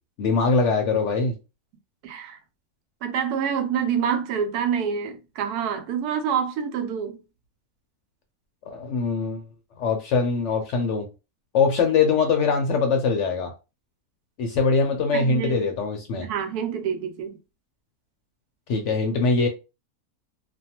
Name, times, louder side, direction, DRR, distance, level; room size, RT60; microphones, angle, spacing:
voice 1, 0.2-1.3 8.7-9.4 9.8-11.1 11.5-13.5 14.4-16.3 18.7-19.5, left 4 dB, 65° left, 0.7 m, -22 dB
voice 2, 2.0-2.4 3.0-7.2 15.1-15.6 16.2-17.4, right 7 dB, 90° right, 1.1 m, -27 dB
2.5 x 2.2 x 2.8 m
omnidirectional pair, 1.6 m